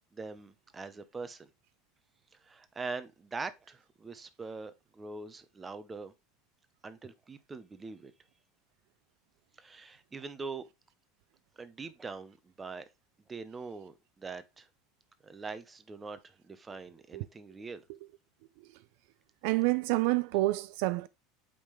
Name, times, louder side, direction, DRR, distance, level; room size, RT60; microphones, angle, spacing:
voice 1, 0.1-1.5 2.4-6.1 6.8-8.1 9.6-10.7 11.6-12.9 13.3-14.7 15.2-17.8, right 4 dB, 15° right, 0.7 m, -43 dB
voice 2, 19.4-21.1, right 19 dB, 65° right, 0.4 m, -28 dB
8.6 x 3.7 x 3.2 m
supercardioid pair, 155°, 0 cm